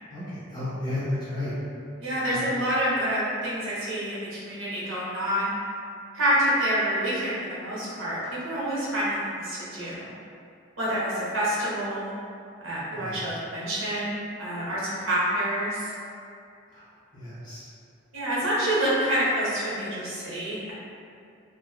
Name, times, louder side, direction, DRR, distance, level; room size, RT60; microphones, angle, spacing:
voice 1, 0.1-1.5 2.3-2.4 12.9-13.2 16.7-16.8 17.1-17.7, left 1 dB, 20° left, -11 dB, 0.7 m, -33 dB
voice 2, 2.0-5.5 6.1-10.1 10.8-12.1 12.6-14.1 14.4-15.9 18.1-20.7, equal, 85° right, -9 dB, 0.9 m, -27 dB
2.8 x 2.0 x 2.3 m, 2.4 s
head